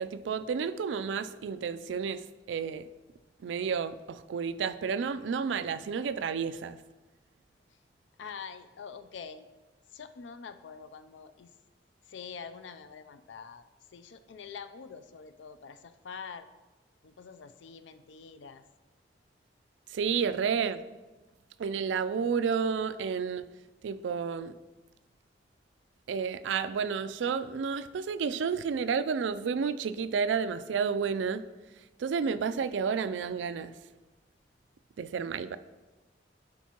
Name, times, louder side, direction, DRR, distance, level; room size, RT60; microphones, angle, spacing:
voice 1, 0.0-2.8 3.4-6.8 19.9-20.8 21.6-23.5 23.8-24.5 26.1-31.4 32.0-33.7 35.0-35.6, right 6 dB, 90° right, 0.3 m, -31 dB
voice 2, 8.2-9.5 9.9-11.5 12.1-13.6 13.9-16.5 17.0-18.6, left 6 dB, 85° left, 0.4 m, -45 dB
11.5 x 4.6 x 2.9 m
head